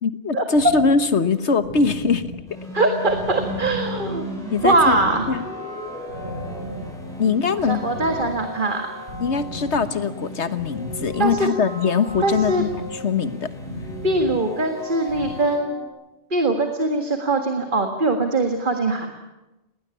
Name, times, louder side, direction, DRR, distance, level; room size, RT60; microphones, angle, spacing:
voice 1, 0.0-2.3 4.5-5.0 5.3-5.4 7.2-7.8 9.2-13.5, left 5 dB, 80° left, 11 dB, 1.6 m, -22 dB
sound 1, 0.5-15.3, equal, 75° right, 6.2 m, -37 dB
sound 2, 2.5-15.6, equal, 5° left, 7.7 m, -39 dB
voice 2, 2.7-4.2 4.6-5.3 7.7-8.9 11.2-11.5 12.2-12.6 14.0-15.8 16.3-19.1, right 2 dB, 45° right, 5 dB, 1.9 m, -21 dB
sound 3, 3.1-15.9, left 1 dB, 20° left, 5.9 m, -38 dB
20.5 x 18.5 x 9.8 m, 1.0 s
omnidirectional pair, 1.2 m